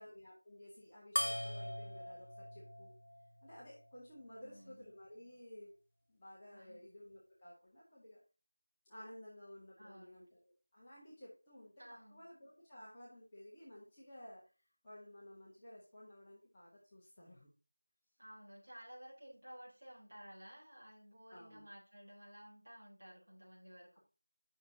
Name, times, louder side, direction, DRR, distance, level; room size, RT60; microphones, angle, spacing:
voice 1, 0.0-2.9 3.4-5.8 6.1-8.2 8.8-10.4 10.7-11.8 12.1-14.4 14.8-17.5 21.3-21.7, left 1 dB, 10° left, -8 dB, 1.1 m, -55 dB
sound 1, 1.2-4.0, left 1 dB, 65° left, 1.5 m, -41 dB
voice 2, 4.3-4.9 6.4-6.8 9.8-10.2 11.8-12.2 18.2-24.0, equal, 45° right, -6 dB, 4.0 m, -55 dB
9.3 x 6.1 x 2.8 m, 0.33 s
figure-of-eight pair, 175°, 0 cm